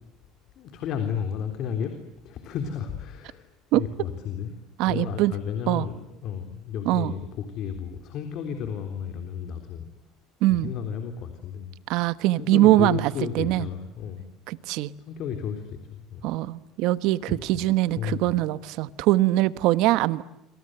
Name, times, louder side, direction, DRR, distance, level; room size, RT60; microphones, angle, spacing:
voice 1, 0.6-2.0 2.2-4.5 4.8-9.9 10.5-11.7 12.4-14.2 15.1-16.2 17.3-17.6 18.0-18.3, left 7 dB, 50° left, 6 dB, 3.7 m, -33 dB
voice 2, 4.8-5.3 5.7-5.9 6.8-7.1 10.4-10.7 11.9-13.7 14.5-14.9 16.2-20.2, right 16 dB, 65° right, 15 dB, 1.1 m, -22 dB
27.0 x 27.0 x 7.9 m, 0.88 s
cardioid pair, 135°, 0 cm